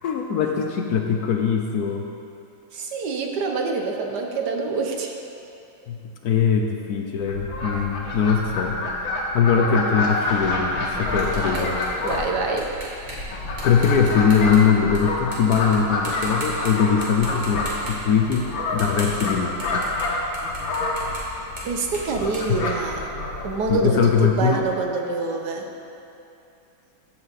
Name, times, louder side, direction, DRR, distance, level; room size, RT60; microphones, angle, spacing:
voice 1, 0.0-2.1 5.9-8.8 9.3-11.7 13.6-18.4 18.7-19.9 22.5-22.6 23.7-24.7, left 6 dB, 65° left, 3 dB, 1.1 m, -21 dB
voice 2, 2.7-5.2 11.1-11.7 12.0-12.7 21.6-23.1 23.4-25.7, right 4 dB, 65° right, 2 dB, 1.5 m, -26 dB
Fowl, 7.3-24.5, left 2 dB, 80° left, 2.2 m, -28 dB
sound 1, 10.1-15.0 15.3-15.8 16.0-16.7 17.0-23.3, right 1 dB, 25° right, 2.3 m, -39 dB
15.5 x 8.1 x 4.1 m, 2.7 s
omnidirectional pair, 2.1 m